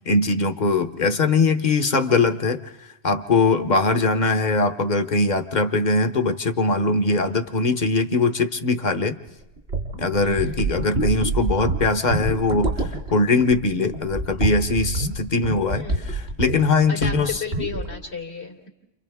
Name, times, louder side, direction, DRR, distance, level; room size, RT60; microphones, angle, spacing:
voice 1, 0.1-2.7 3.0-9.1 10.0-17.4, left 3 dB, 45° left, 9 dB, 1.1 m, -21 dB
sound 1, 9.3-16.7 17.0-17.3 17.5-18.0, right 2 dB, 80° right, 2.9 m, -27 dB
voice 2, 10.2-10.7 15.7-16.0 16.9-18.7, left 5 dB, 80° left, 1 dB, 3.0 m, -33 dB
30.0 x 27.5 x 3.6 m, 0.96 s
omnidirectional pair, 1.1 m